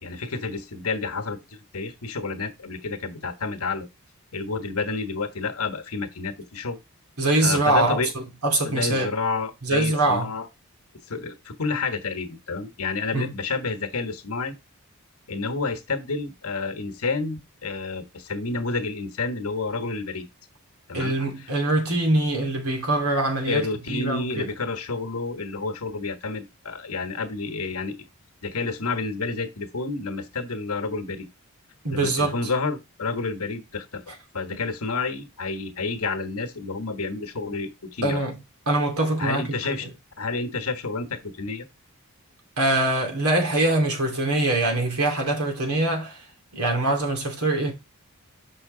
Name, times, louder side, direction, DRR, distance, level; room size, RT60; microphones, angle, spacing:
voice 1, 0.0-3.9 4.3-6.8 7.4-8.1 8.6-10.5 11.1-14.5 15.3-20.3 20.9-21.1 21.4-21.5 23.5-28.0 28.4-31.3 31.9-34.0 34.3-38.2 39.2-39.9 40.2-41.6, left 4 dB, 75° left, 1.2 m, -29 dB
voice 2, 7.2-9.1 9.6-10.3 13.1-13.3 20.9-24.5 31.8-32.4 38.0-38.4 38.7-39.9 42.6-46.2 46.5-47.7, right 2 dB, 85° right, 2.6 m, -23 dB
6.4 x 5.9 x 3.8 m
head